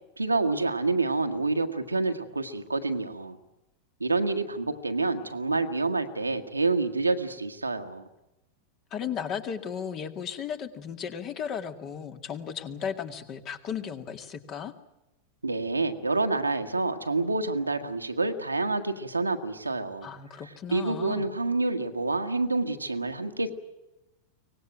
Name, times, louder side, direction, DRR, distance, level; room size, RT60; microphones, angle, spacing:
voice 1, 0.2-3.4 4.0-8.1 15.4-20.1 20.7-23.5, right 3 dB, 80° right, 5 dB, 1.6 m, -28 dB
voice 2, 8.9-14.7 20.0-21.3, left 7 dB, 35° left, 8 dB, 2.1 m, -35 dB
24.0 x 19.0 x 9.2 m, 0.95 s
figure-of-eight pair, 90°, 0 cm